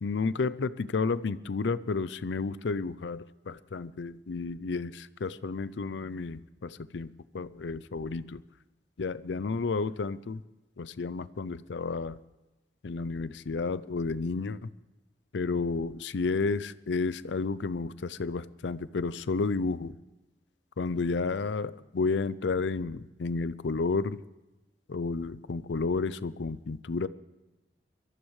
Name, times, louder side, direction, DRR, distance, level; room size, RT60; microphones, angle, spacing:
voice 1, 0.0-8.4 9.0-10.4 10.8-12.2 12.8-14.7 15.3-19.9 20.8-24.2 24.9-27.1, left 4 dB, 80° left, 16 dB, 0.5 m, -31 dB
23.5 x 14.0 x 3.2 m, 1.1 s
head